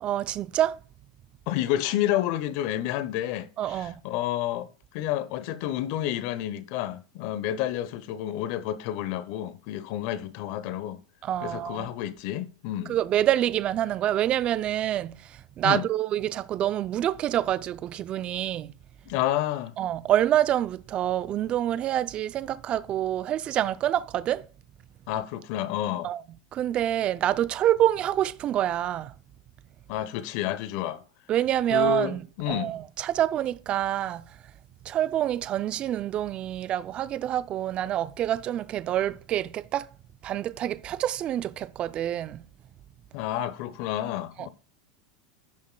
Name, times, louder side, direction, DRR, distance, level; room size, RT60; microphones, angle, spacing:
voice 1, 0.0-0.8 3.6-3.9 11.2-11.9 12.9-18.7 19.8-24.5 26.0-26.2 26.5-29.1 31.3-32.2 32.5-34.2 34.9-39.9 40.2-42.4 44.4-44.5, right 12 dB, 35° right, 0.4 m, -27 dB
voice 2, 1.5-4.7 4.9-11.0 11.4-13.0 15.6-15.9 19.1-19.8 25.1-26.1 29.9-31.0 31.7-32.7 43.1-44.5, left 12 dB, 55° left, 0.8 m, -30 dB
15.5 x 5.5 x 2.3 m
hypercardioid pair, 110°, 3 cm